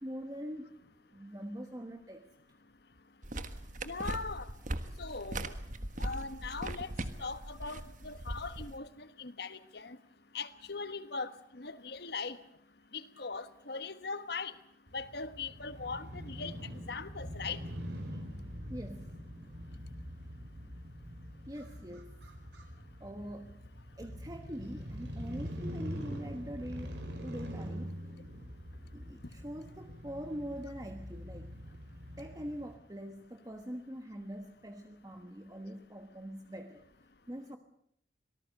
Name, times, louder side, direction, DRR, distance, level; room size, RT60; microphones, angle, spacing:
voice 1, 0.0-0.7 1.1-2.3 18.7-19.1 21.5-22.1 23.0-23.7 24.0-28.0 28.9-31.5 32.2-36.8 37.3-37.6, equal, 20° right, 5 dB, 1.3 m, -43 dB
sound 1, 3.2-8.8, right 1 dB, 45° right, 1.5 m, -40 dB
voice 2, 3.8-4.5 5.0-5.5 6.0-6.9 7.2-10.0 10.3-12.4 12.9-14.5 14.9-16.6 16.9-17.6, left 4 dB, 60° left, 13 dB, 1.3 m, -40 dB
Crow / Motorcycle, 14.9-32.7, equal, 70° right, 5.1 m, -44 dB
26.0 x 18.5 x 6.6 m, 0.69 s
head